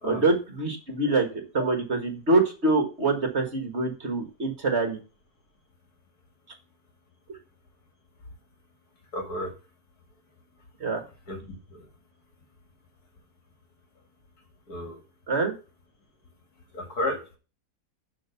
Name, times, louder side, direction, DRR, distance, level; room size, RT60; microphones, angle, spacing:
voice 1, 0.0-5.0 10.8-11.0 15.3-15.5, right 3 dB, 40° right, 5 dB, 1.9 m, -25 dB
voice 2, 9.1-9.6 11.3-11.9 14.7-15.0 16.7-17.4, left 1 dB, 60° left, 4 dB, 2.6 m, -33 dB
11.5 x 4.5 x 6.9 m, 0.34 s
omnidirectional pair, 1.8 m